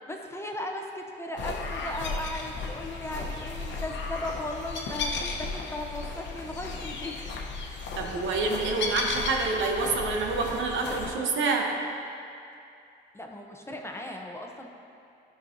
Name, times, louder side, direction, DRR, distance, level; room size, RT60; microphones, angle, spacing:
voice 1, 0.1-7.2 13.1-14.7, left 1 dB, 15° left, 1 dB, 0.7 m, -37 dB
sound 1, 1.4-11.1, left 3 dB, 65° left, 0.9 m, -35 dB
voice 2, 8.0-11.7, right 3 dB, 75° right, 1 dB, 0.9 m, -27 dB
11.0 x 5.4 x 2.7 m, 2.6 s
cardioid pair, 90°, 20 cm